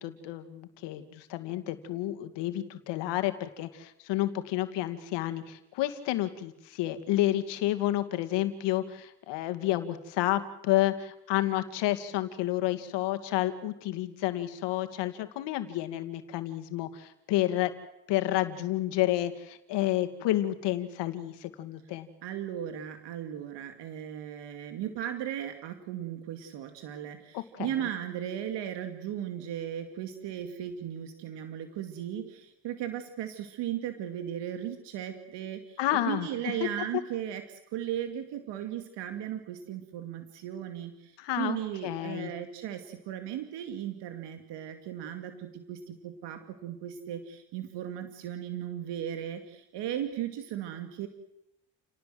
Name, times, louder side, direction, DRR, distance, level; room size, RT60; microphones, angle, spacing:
voice 1, 0.0-17.7 18.1-22.1 27.3-27.8 35.8-36.7 41.2-41.6 41.8-42.3, left 14 dB, 85° left, 9 dB, 2.4 m, -30 dB
voice 2, 22.2-35.8 36.1-51.1, right 10 dB, 75° right, 7 dB, 2.5 m, -36 dB
29.5 x 19.0 x 7.8 m, 0.84 s
cardioid pair, 120°, 41 cm